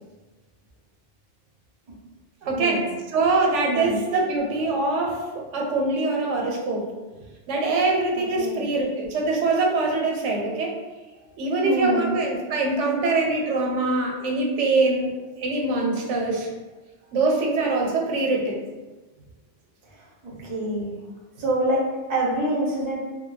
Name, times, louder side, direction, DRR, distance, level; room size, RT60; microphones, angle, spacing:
voice 1, 2.4-2.8 3.1-6.9 7.5-10.7 11.4-16.5 17.1-18.6, right 3 dB, 90° right, 1 dB, 0.9 m, -23 dB
voice 2, 3.6-4.0 8.1-8.7 11.1-11.3 11.6-12.1 20.2-21.0 21.4-23.0, right 1 dB, 35° right, -3 dB, 0.5 m, -26 dB
2.2 x 2.1 x 3.1 m, 1.2 s
omnidirectional pair, 1.2 m